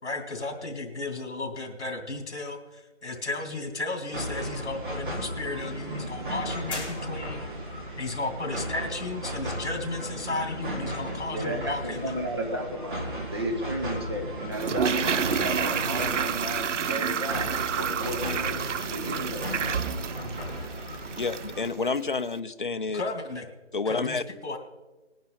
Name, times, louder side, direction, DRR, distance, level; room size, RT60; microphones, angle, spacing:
voice 1, 0.0-7.5 8.0-12.1 22.9-23.5 23.9-24.6, left 2 dB, 65° left, 5 dB, 2.5 m, -34 dB
sound 1, 4.1-21.7, equal, 45° right, 2.3 m, -35 dB
sound 2, 6.7-7.7, left 3 dB, 25° left, 2.9 m, -38 dB
voice 2, 11.3-19.5, right 1 dB, 20° right, 1 dB, 1.2 m, -33 dB
Toilet flush, 14.5-21.6 21.9-22.0, right 7 dB, 85° right, 0.6 m, -29 dB
voice 3, 21.2-23.0 23.7-24.2, left 4 dB, 45° left, 10 dB, 0.6 m, -29 dB
20.0 x 10.5 x 4.0 m, 1.2 s
figure-of-eight pair, 175°, 35 cm